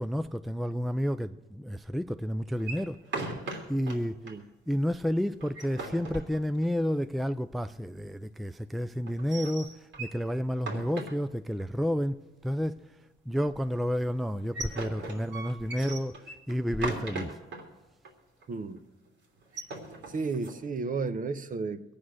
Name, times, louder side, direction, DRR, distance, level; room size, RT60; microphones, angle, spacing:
voice 1, 0.0-3.0 3.7-4.2 4.7-12.8 13.3-17.4, equal, ahead, 0.4 m, -30 dB
sound 1, 2.6-4.0 4.3-4.4 4.7-4.8 5.3-6.8 9.1-10.2 10.6-11.6 14.2-17.6 18.0-18.1 18.4-18.8 19.4-20.6, right 3 dB, 70° right, 3.4 m, -38 dB
voice 2, 18.5-18.8 20.1-21.8, right 4 dB, 45° right, 1.0 m, -33 dB
22.0 x 8.7 x 6.4 m
cardioid pair, 90°, 20 cm